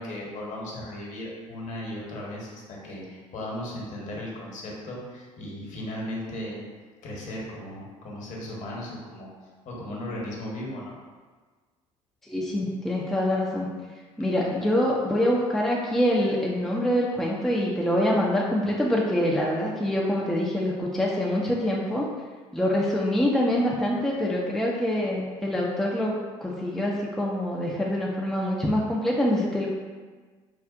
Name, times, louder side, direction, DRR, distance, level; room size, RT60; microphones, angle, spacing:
voice 1, 0.0-6.6 7.0-9.3 9.6-11.0, left 1 dB, 45° left, -3 dB, 1.0 m, -36 dB
voice 2, 12.3-13.7 14.2-22.1 22.5-29.7, left 1 dB, ahead, -4 dB, 0.5 m, -25 dB
4.5 x 2.4 x 2.4 m, 1.4 s
figure-of-eight pair, 60°, 18 cm